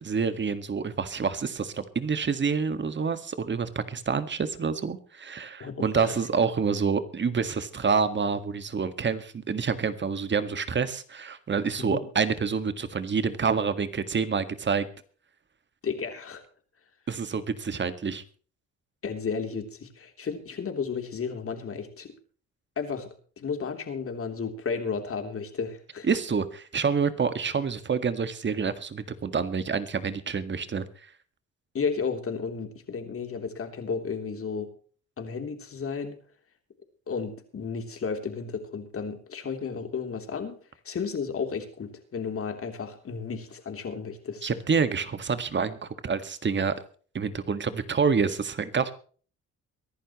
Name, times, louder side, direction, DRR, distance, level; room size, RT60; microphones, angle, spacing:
voice 1, 0.0-14.9 17.1-18.2 26.1-30.9 44.4-46.7 47.1-48.9, right 5 dB, 40° right, 11 dB, 1.8 m, -27 dB
voice 2, 5.6-6.2 11.8-12.0 15.8-16.4 19.0-22.1 22.8-26.1 31.7-34.7 35.2-36.2 37.1-40.6 40.8-44.4, left 5 dB, 45° left, 5 dB, 3.3 m, -33 dB
23.5 x 11.5 x 3.1 m, 0.42 s
cardioid pair, 90°, 30 cm